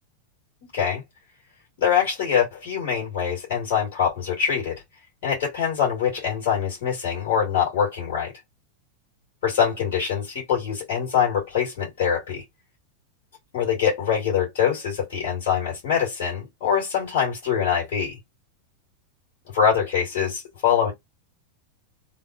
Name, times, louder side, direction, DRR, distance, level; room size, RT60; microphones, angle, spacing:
voice 1, 1.8-4.8 5.2-8.3 9.4-12.4 13.5-18.2 19.5-20.9, left 8 dB, 50° left, 2.4 m, -24 dB
3.8 x 2.1 x 3.1 m
figure-of-eight pair, 90°, 0 cm